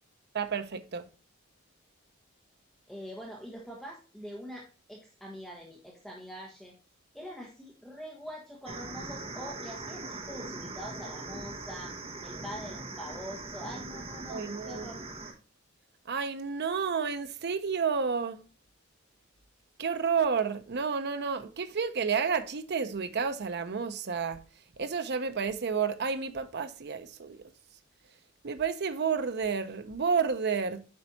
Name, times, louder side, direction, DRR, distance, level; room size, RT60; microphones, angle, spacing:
voice 1, 0.3-1.0 14.3-14.9 16.1-18.4 19.8-24.4 24.8-27.4 28.4-30.8, right 6 dB, 55° right, 0.6 m, -30 dB
voice 2, 2.9-6.7 7.1-15.0, equal, ahead, 1.2 m, -44 dB
sound 1, 8.7-15.3, right 2 dB, 30° right, 1.2 m, -41 dB
8.6 x 5.3 x 2.7 m
head